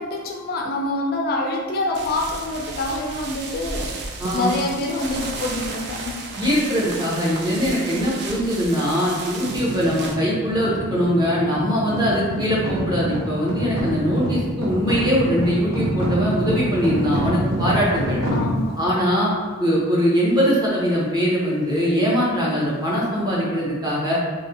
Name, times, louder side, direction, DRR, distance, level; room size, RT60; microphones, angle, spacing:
voice 1, 0.0-6.3 18.3-18.8, left 2 dB, 45° left, 1 dB, 0.4 m, -26 dB
sound 1, 1.9-10.2, right 3 dB, 50° right, 0.4 m, -34 dB
voice 2, 6.4-18.2 18.8-19.3 19.6-24.2, equal, 20° right, -6 dB, 0.9 m, -21 dB
sound 2, 9.4-18.9, equal, 85° right, 0.8 m, -26 dB
3.1 x 2.7 x 2.8 m, 1.4 s
head